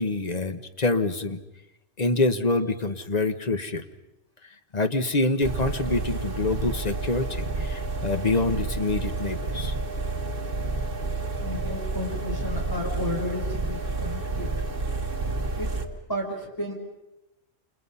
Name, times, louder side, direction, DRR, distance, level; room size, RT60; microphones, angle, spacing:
voice 1, 0.0-1.4 2.0-3.8 4.7-9.7, left 2 dB, 35° left, 8 dB, 1.3 m, -26 dB
sound 1, 5.4-15.9, right 3 dB, 45° right, 1.8 m, -30 dB
voice 2, 11.4-14.5 15.6-15.8 16.1-16.7, left 1 dB, 15° left, -1 dB, 5.4 m, -33 dB
28.5 x 28.5 x 5.7 m, 0.92 s
omnidirectional pair, 1.3 m